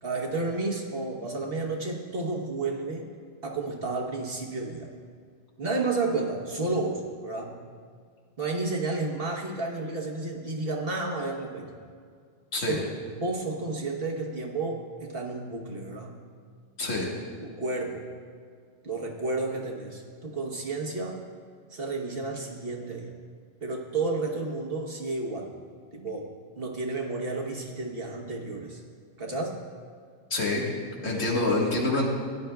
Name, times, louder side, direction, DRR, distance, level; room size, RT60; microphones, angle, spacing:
voice 1, 0.0-3.0 3.4-4.9 5.6-7.6 8.4-11.7 12.5-16.2 17.4-18.0 18.8-21.2 21.7-23.1 23.6-25.5 25.9-28.8 29.2-29.6 31.0-31.3, right 3 dB, 50° right, 0 dB, 1.3 m, -31 dB
voice 2, 16.8-17.1 30.3-30.6 31.0-32.1, left 2 dB, 80° left, -2 dB, 2.0 m, -26 dB
16.5 x 10.5 x 2.3 m, 2.1 s
omnidirectional pair, 1.3 m